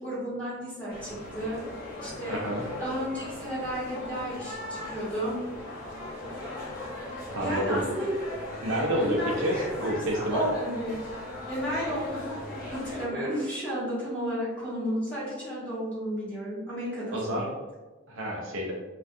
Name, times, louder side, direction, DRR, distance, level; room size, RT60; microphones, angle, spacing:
voice 1, 0.0-1.6 2.0-2.4 2.8-5.4 7.4-8.1 8.9-10.0 10.3-11.1 11.5-17.4, equal, 5° left, -10 dB, 1.1 m, -33 dB
sound 1, 0.9-13.1, left 1 dB, 50° left, 0.7 m, -38 dB
voice 2, 2.3-2.6 7.3-7.8 8.6-10.4 17.1-17.5 18.1-18.7, equal, 70° right, -1 dB, 0.5 m, -29 dB
2.3 x 2.2 x 2.6 m, 1.2 s
head